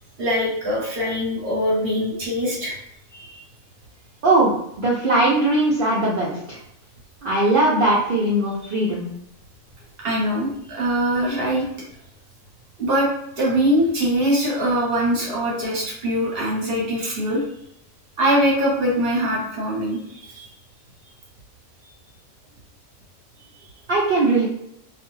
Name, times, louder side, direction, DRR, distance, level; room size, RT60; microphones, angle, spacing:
voice 1, 0.2-2.8 3.1-3.4 10.0-11.7 12.8-13.1 13.4-17.4 18.2-20.5, equal, 50° right, -4 dB, 0.9 m, -22 dB
voice 2, 4.2-4.5 4.8-6.6 7.2-9.1 23.9-24.4, right 2 dB, 65° right, -6 dB, 0.5 m, -19 dB
2.4 x 2.3 x 3.1 m, 0.77 s
omnidirectional pair, 1.5 m